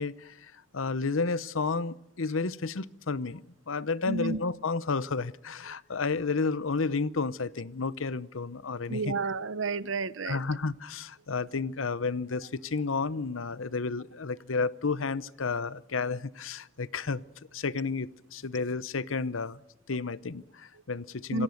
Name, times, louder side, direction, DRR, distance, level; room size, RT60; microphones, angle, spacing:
voice 1, 0.0-9.1 10.2-17.2 17.5-19.6 19.9-21.4, left 4 dB, 80° left, 0.8 m, -31 dB
voice 2, 4.1-4.4 8.9-10.4 21.3-21.4, right 3 dB, 70° right, 0.8 m, -31 dB
27.5 x 17.5 x 6.6 m
head